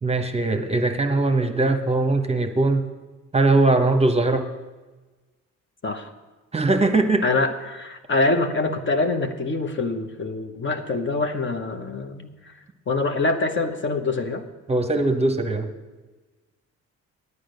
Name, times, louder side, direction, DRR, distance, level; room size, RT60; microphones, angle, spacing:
voice 1, 0.0-2.8 3.3-4.5 6.5-7.2 14.7-15.7, right 2 dB, 20° right, 7 dB, 0.9 m, -20 dB
voice 2, 7.2-12.5 12.9-14.4, left 3 dB, 40° left, 7 dB, 1.0 m, -25 dB
9.7 x 8.6 x 6.6 m, 1.2 s
cardioid pair, 90°, 30 cm